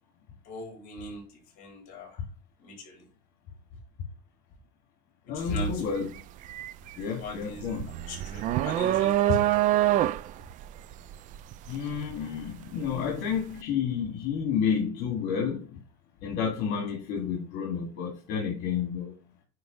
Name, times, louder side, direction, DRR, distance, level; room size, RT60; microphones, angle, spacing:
voice 1, 0.5-2.2 2.6-3.1 5.3-5.8 7.0-9.7, left 1 dB, 45° left, 0 dB, 4.6 m, -38 dB
voice 2, 5.3-6.1 7.0-7.9 11.7-15.8 16.2-19.1, left 7 dB, 65° left, 0 dB, 2.4 m, -30 dB
sound 1, 5.4-5.6 6.0-13.0, right 14 dB, 45° right, 0.4 m, -26 dB
9.5 x 3.4 x 5.5 m, 0.32 s
cardioid pair, 165°, 19 cm